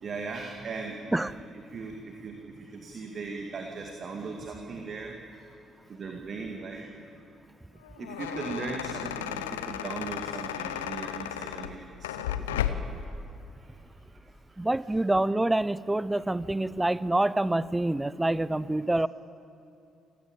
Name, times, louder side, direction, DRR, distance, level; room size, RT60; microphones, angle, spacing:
voice 1, 0.0-5.1 5.9-6.8 8.0-13.0, right 4 dB, 45° right, 2 dB, 2.5 m, -38 dB
sound 1, 7.8-13.0, left 10 dB, 75° left, 0.8 m, -34 dB
voice 2, 14.6-19.1, right 1 dB, 15° right, 19 dB, 0.7 m, -26 dB
29.0 x 16.5 x 8.8 m, 2.7 s
figure-of-eight pair, 45°, 0 cm